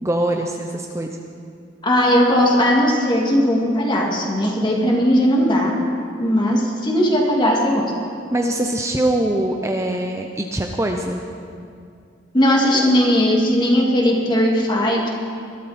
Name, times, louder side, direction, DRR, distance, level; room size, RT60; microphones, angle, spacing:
voice 1, 0.0-1.1 8.3-11.2, right 1 dB, 15° right, 3 dB, 0.7 m, -22 dB
voice 2, 1.8-5.8 6.2-7.9 12.3-15.1, equal, 25° left, -1 dB, 2.2 m, -18 dB
21.5 x 12.5 x 4.3 m, 2.3 s
head